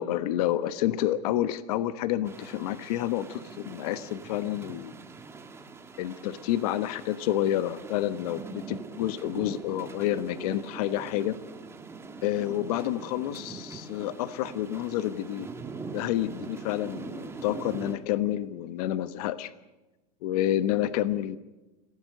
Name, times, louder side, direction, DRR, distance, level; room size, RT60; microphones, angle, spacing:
voice 1, 0.0-4.9 6.0-11.4 12.2-15.5 15.9-19.5 20.2-21.4, left 12 dB, 65° left, 13 dB, 1.2 m, -29 dB
sound 1, 2.3-18.0, right 4 dB, 10° right, 1.7 m, -42 dB
26.0 x 17.5 x 6.7 m, 1.1 s
supercardioid pair, 150°, 21 cm